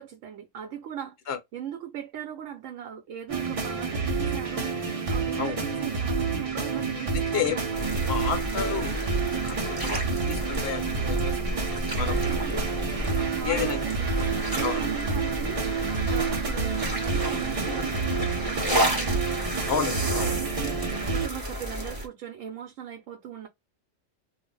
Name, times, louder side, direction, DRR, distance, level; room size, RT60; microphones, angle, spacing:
voice 1, 0.0-1.2 1.5-8.1 12.1-12.7 13.3-15.6 16.1-18.0 18.4-19.2 20.2-23.5, right 9 dB, 80° right, 0.9 m, -39 dB
sound 1, 3.3-21.3, right 4 dB, 35° right, 0.6 m, -29 dB
Meer Sand sanft Bläschen Sard.TB, 7.7-22.1, equal, 20° right, 0.9 m, -32 dB
voice 2, 8.1-9.0 9.4-10.0 10.3-11.7 11.9-12.1 13.4-13.8 14.6-14.8 19.7-20.3, left 7 dB, 60° left, 0.9 m, -30 dB
2.4 x 2.0 x 3.7 m
omnidirectional pair, 1.3 m